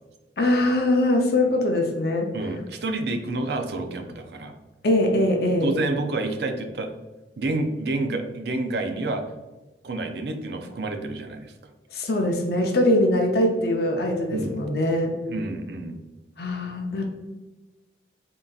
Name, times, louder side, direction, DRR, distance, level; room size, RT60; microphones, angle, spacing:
voice 1, 0.4-2.3 4.8-5.8 11.9-15.2 16.4-17.1, left 1 dB, 60° left, 2 dB, 0.5 m, -22 dB
voice 2, 2.3-4.5 5.6-6.9 7.4-9.2 9.8-11.5 14.3-14.6 15.3-16.0, right 2 dB, 65° right, 6 dB, 0.5 m, -29 dB
3.9 x 3.7 x 2.3 m, 1.2 s
head